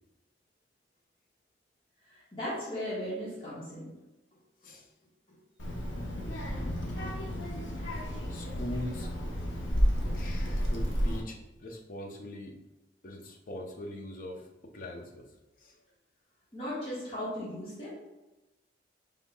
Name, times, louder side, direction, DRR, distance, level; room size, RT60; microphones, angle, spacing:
voice 1, 2.0-3.9 5.3-5.4 16.5-17.9, equal, 30° left, -9 dB, 1.3 m, -37 dB
Child speech kid speaking, 5.6-11.2, equal, 85° left, 0.8 m, -31 dB
voice 2, 8.3-9.1 9.4-9.6 10.1-12.6 13.0-15.3 15.6-15.8, left 1 dB, 45° left, 2 dB, 0.6 m, -42 dB
5.4 x 3.5 x 2.2 m, 1.0 s
head